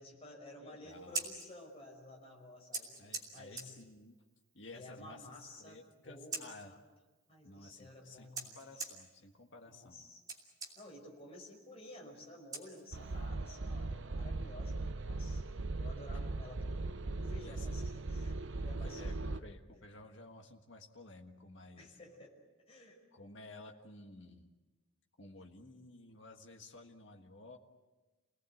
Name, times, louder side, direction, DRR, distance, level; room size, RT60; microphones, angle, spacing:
voice 1, 0.0-3.0 3.3-3.8 4.7-5.8 6.0-6.8 7.3-8.8 9.6-10.2 10.8-15.4 15.7-19.0 19.3-19.4 19.7-19.8 21.8-22.3 22.7-23.0, left 1 dB, 30° left, -1 dB, 5.4 m, -53 dB
voice 2, 0.6-1.3 3.0-4.2 4.5-6.7 7.4-10.0 17.4-17.8 18.8-21.9 23.1-24.5 25.2-27.6, left 2 dB, 55° left, 2 dB, 1.6 m, -54 dB
Scissors, 0.9-13.3, right 3 dB, 15° right, 2.9 m, -48 dB
sound 1, 12.9-19.4, right 2 dB, 60° right, 0.8 m, -39 dB
29.0 x 19.0 x 7.9 m, 1.2 s
head